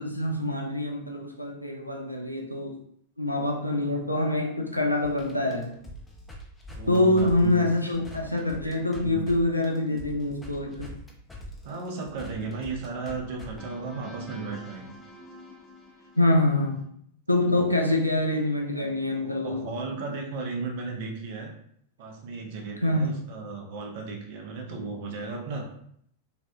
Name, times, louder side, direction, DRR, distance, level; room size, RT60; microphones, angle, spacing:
voice 1, 0.0-2.7 3.2-5.7 6.9-10.9 16.2-16.8 17.3-19.7 22.8-23.2, left 1 dB, 90° left, 0.3 m, -25 dB
sound 1, 5.0-9.4 9.6-16.9, left 1 dB, 10° left, 0.5 m, -45 dB
voice 2, 6.7-7.6 8.9-9.3 11.6-14.9 19.1-21.5 22.0-25.7, right 4 dB, 50° right, 0.5 m, -35 dB
2.5 x 2.1 x 2.4 m
figure-of-eight pair, 90°, 0 cm